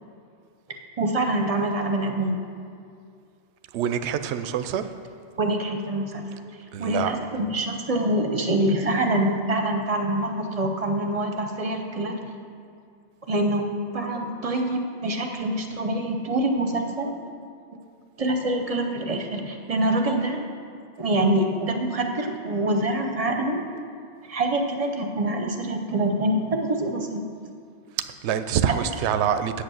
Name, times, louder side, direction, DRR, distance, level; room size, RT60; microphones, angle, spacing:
voice 1, 1.0-2.4 5.4-6.2 6.8-12.1 13.3-13.7 13.9-17.1 18.2-20.4 21.0-23.6 24.3-27.2, right 1 dB, 35° right, 4 dB, 0.8 m, -25 dB
voice 2, 3.7-4.9 6.7-7.2 28.0-29.6, right 9 dB, 75° right, 10 dB, 0.8 m, -25 dB
8.2 x 8.1 x 6.3 m, 2.4 s
omnidirectional pair, 1.2 m